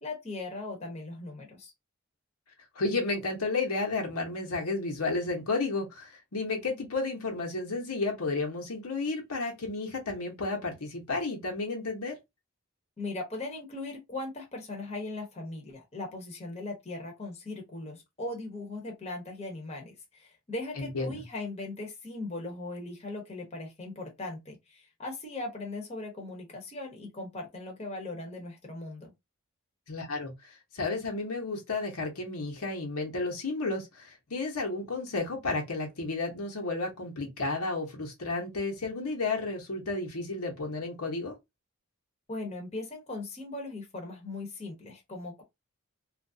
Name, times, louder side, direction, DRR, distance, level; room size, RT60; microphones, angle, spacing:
voice 1, 0.0-1.7 13.0-29.1 42.3-45.4, left 2 dB, 30° left, 0.9 m, -39 dB
voice 2, 2.7-12.2 20.8-21.2 29.9-41.4, left 3 dB, 85° left, 1.1 m, -32 dB
2.9 x 2.5 x 2.7 m
head